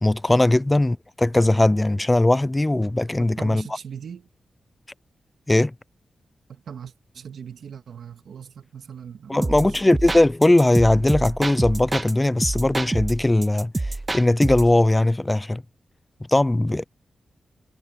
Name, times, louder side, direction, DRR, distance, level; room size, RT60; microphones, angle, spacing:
voice 1, 0.0-3.6 5.5-5.7 9.3-15.6 16.3-16.8, left 1 dB, 20° left, 0.5 m, -19 dB
voice 2, 3.2-4.3 6.5-10.0, right 7 dB, 75° right, 1.9 m, -40 dB
sound 1, 9.4-12.1 12.4-14.8, right 2 dB, 30° right, 1.7 m, -27 dB
cardioid pair, 50°, 0 cm